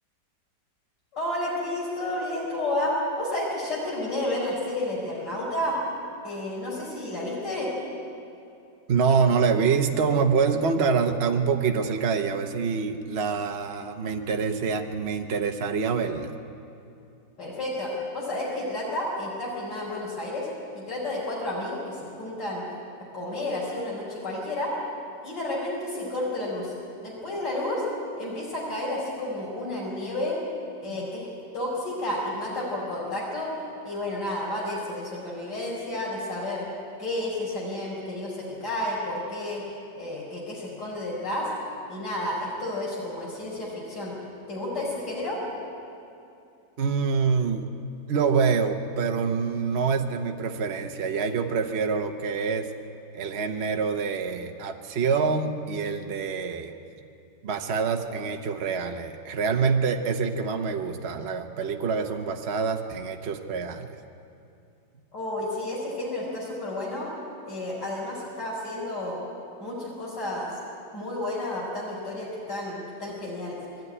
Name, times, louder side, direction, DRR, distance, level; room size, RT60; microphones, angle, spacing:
voice 1, 1.1-5.8 6.2-7.7 17.4-20.5 20.7-22.6 23.1-24.7 25.2-26.7 27.0-27.8 28.2-30.4 30.8-31.3 31.5-33.5 33.8-36.7 37.0-39.6 40.0-41.5 41.9-44.1 44.5-45.4 65.1-67.1 67.4-69.2 69.6-70.5 70.9-73.6, left 1 dB, 75° left, -6 dB, 5.2 m, -31 dB
voice 2, 8.9-16.3 30.9-31.0 46.8-47.7 48.1-52.7 53.1-56.7 57.4-64.0, right 5 dB, 45° right, 4 dB, 1.0 m, -26 dB
22.0 x 14.0 x 9.8 m, 2.6 s
omnidirectional pair, 1.9 m